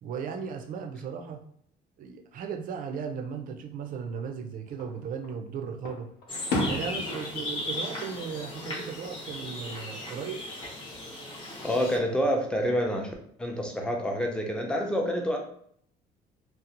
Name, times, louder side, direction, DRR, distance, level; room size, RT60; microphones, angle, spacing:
voice 1, 0.0-1.4 2.0-6.1 6.7-10.5, right 6 dB, 55° right, 5 dB, 0.4 m, -36 dB
Fireworks, 4.7-5.4 5.8-9.0 9.3-9.9 11.4-12.2, left 1 dB, 75° left, 0.6 m, -35 dB
sound 1, 6.3-12.0, left 1 dB, 30° left, 0.8 m, -37 dB
voice 2, 11.6-13.1 13.4-15.4, equal, 5° left, 1 dB, 0.5 m, -27 dB
2.5 x 2.0 x 2.8 m, 0.65 s
cardioid pair, 110°, 17 cm